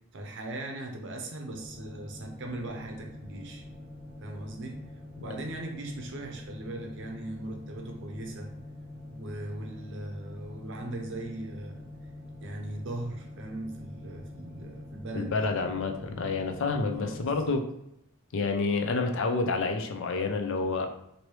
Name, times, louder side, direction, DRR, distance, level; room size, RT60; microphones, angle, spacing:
voice 1, 0.1-3.6 4.2-4.8 5.2-8.5 9.1-11.8 12.4-15.5 16.9-17.6, right 1 dB, 55° right, 2 dB, 0.6 m, -39 dB
sound 1, 1.5-17.5, left 1 dB, 10° left, 1.1 m, -45 dB
voice 2, 15.2-17.6 18.3-20.9, left 3 dB, 60° left, 5 dB, 0.4 m, -28 dB
3.1 x 2.7 x 3.0 m, 0.79 s
head